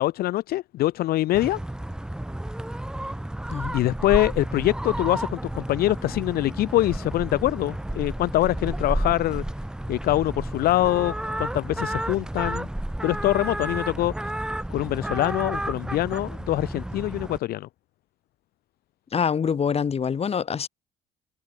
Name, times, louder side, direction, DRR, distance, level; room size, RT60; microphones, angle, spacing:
voice 1, 0.0-1.6 3.7-9.4 9.9-12.7 13.0-14.1 14.7-17.7, left 16 dB, 65° left, 0.5 m, -24 dB
sound 1, 1.3-17.4, right 1 dB, 5° right, 0.7 m, -31 dB
voice 2, 19.1-20.7, left 7 dB, 35° left, 2.5 m, -25 dB
cardioid pair, 110°, 17 cm